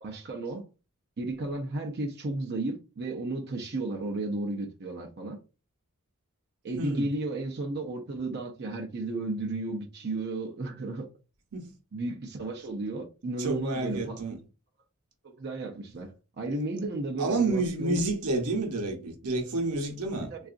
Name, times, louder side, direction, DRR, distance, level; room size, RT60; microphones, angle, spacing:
voice 1, 0.0-0.7 1.2-5.4 6.6-11.1 11.9-14.2 15.2-18.0 20.3-20.4, right 2 dB, 50° right, 0.5 m, -33 dB
voice 2, 6.8-7.1 11.5-11.7 13.4-14.4 17.2-20.3, right 2 dB, 90° right, 0.8 m, -29 dB
3.7 x 2.4 x 2.4 m
head